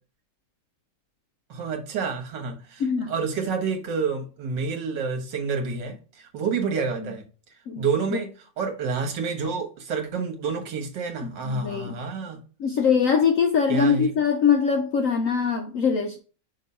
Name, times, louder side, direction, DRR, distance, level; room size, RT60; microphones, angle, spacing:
voice 1, 1.5-7.2 7.8-12.4 13.7-14.1, right 5 dB, 75° right, 1.9 m, -29 dB
voice 2, 2.8-3.1 7.7-7.8 8.1-8.2 11.4-12.0 12.6-16.2, left 6 dB, 60° left, 0.9 m, -22 dB
6.0 x 3.3 x 5.4 m
omnidirectional pair, 1.9 m